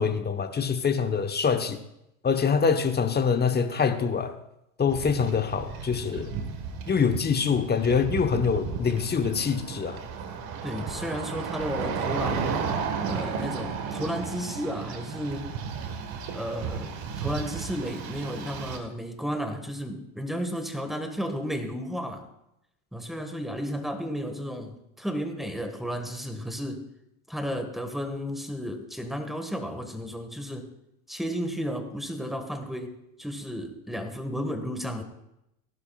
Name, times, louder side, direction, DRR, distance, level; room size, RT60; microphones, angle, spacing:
voice 1, 0.0-1.8 2.2-4.3 4.8-6.3 6.9-10.0, left 6 dB, 25° left, 7 dB, 1.2 m, -25 dB
sound 1, 4.9-18.8, right 6 dB, 55° right, 1.8 m, -34 dB
voice 2, 10.6-12.7 13.0-15.6 16.3-22.3 22.9-26.9 27.3-30.7 31.1-35.0, equal, ahead, 6 dB, 1.8 m, -33 dB
17.5 x 12.0 x 2.5 m, 0.84 s
hypercardioid pair, 90°, 43 cm